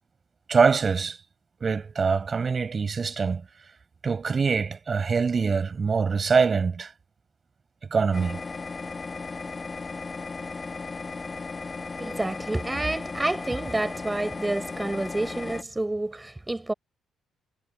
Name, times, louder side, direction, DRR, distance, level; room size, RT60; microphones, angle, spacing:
voice 1, 0.5-1.2 1.6-3.5 4.0-6.9 7.9-8.4, right 5 dB, 40° right, 5.9 m, -24 dB
sound 1, 8.1-15.6, left 4 dB, 30° left, 1.8 m, -36 dB
voice 2, 12.0-16.7, right 2 dB, 15° right, 5.3 m, -29 dB
cardioid pair, 90°, 0 cm